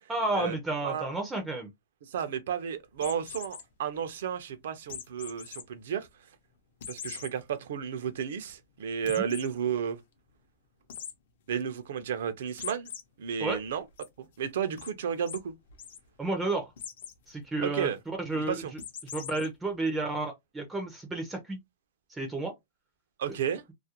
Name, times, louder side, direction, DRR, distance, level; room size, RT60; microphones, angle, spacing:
voice 1, 0.1-1.7 9.2-9.3 13.4-13.6 16.2-16.7 17.3-17.9 18.3-18.6 19.1-21.6 22.1-22.5, right 2 dB, 5° right, 0.4 m, -31 dB
voice 2, 2.1-6.1 6.9-10.0 11.5-12.9 13.2-13.8 14.2-15.5 17.6-18.0 18.3-18.7 23.2-23.6, right 8 dB, 65° right, 0.4 m, -32 dB
sound 1, 3.0-3.6 4.9-5.6 6.1-6.2 6.8-7.3 7.8-7.9 8.2-8.3 9.1-9.5 10.9-11.1 12.6-13.0 13.5-14.1 14.8-14.9 15.3-15.4 15.7-16.0 16.8-17.2 18.8-19.5, left 8 dB, 60° left, 0.6 m, -41 dB
2.3 x 2.1 x 2.7 m
supercardioid pair, 170°, 0 cm